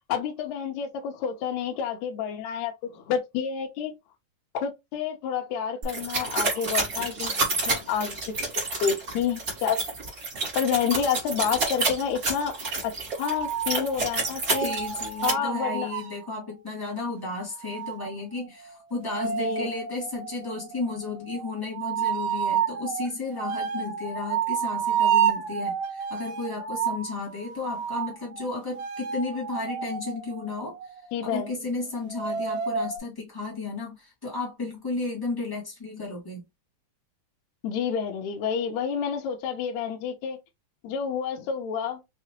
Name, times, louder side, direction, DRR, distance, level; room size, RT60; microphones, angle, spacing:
voice 1, 0.1-3.9 4.5-8.4 8.8-9.8 10.6-12.5 12.8-12.9 13.2-14.7 15.2-15.9 19.4-19.7 31.1-31.5 37.6-40.4 40.8-42.0, left 7 dB, 75° left, 1.8 m, -29 dB
sound 1, 5.8-15.3, right 3 dB, 55° right, 0.9 m, -29 dB
sound 2, 13.2-16.3 17.6-31.5 32.1-33.0, right 8 dB, 85° right, 2.3 m, -30 dB
voice 2, 14.6-30.9 31.2-36.4, left 3 dB, 15° left, 0.7 m, -33 dB
5.7 x 2.1 x 2.9 m
omnidirectional pair, 3.8 m